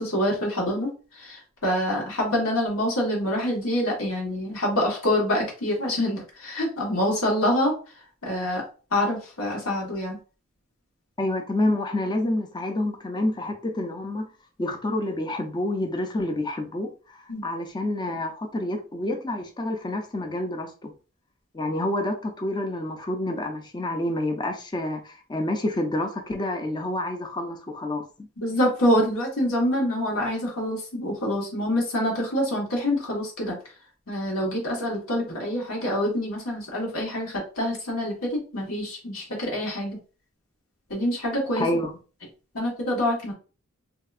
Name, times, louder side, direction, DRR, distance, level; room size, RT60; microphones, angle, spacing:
voice 1, 0.0-7.7 8.2-8.6 8.9-10.2 17.3-17.4 28.4-33.6 34.1-40.0 40.9-41.6 42.5-43.3, left 1 dB, 90° left, 1.3 m, -26 dB
voice 2, 11.2-14.3 14.6-20.9 21.5-28.3 41.6-41.9, left 1 dB, 20° left, 0.4 m, -28 dB
3.3 x 2.7 x 2.4 m
head